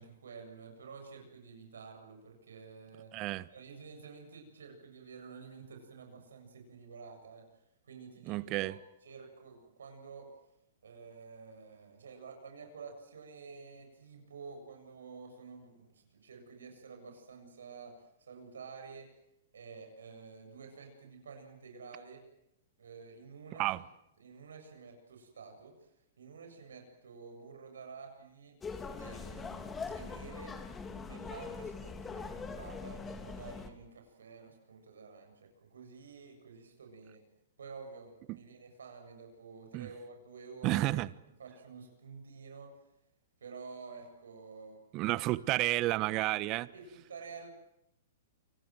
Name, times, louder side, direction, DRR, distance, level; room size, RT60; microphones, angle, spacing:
voice 1, 0.0-3.1 3.5-7.5 7.9-10.3 10.8-19.1 19.5-22.2 22.8-23.7 24.2-25.9 26.2-28.6 29.0-30.6 31.0-37.2 37.6-40.9 41.4-42.7 43.4-45.2 46.7-47.5, right 5 dB, 85° right, 7.9 m, -50 dB
voice 2, 3.1-3.5 8.3-8.8 23.6-23.8 38.3-38.4 39.7-39.9 40.6-41.1 44.9-46.7, right 18 dB, 35° right, 1.1 m, -31 dB
sound 1, 28.6-33.7, left 5 dB, 15° left, 3.1 m, -42 dB
29.0 x 25.0 x 7.8 m
hypercardioid pair, 130°, 0 cm